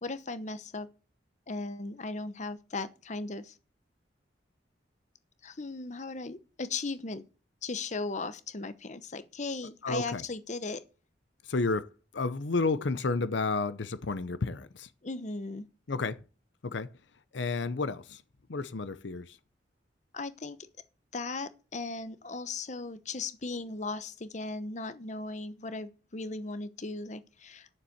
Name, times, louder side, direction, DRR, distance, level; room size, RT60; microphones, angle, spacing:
voice 1, 0.0-0.9 1.5-3.6 5.4-7.2 7.6-10.8 15.0-15.7 20.1-20.7 21.1-27.7, left 3 dB, 40° left, 0.9 m, -37 dB
voice 2, 9.8-10.2 11.4-14.9 15.9-16.2 16.6-16.9 17.3-18.2 18.5-19.4, left 3 dB, 75° left, 0.7 m, -31 dB
9.8 x 7.1 x 7.9 m
head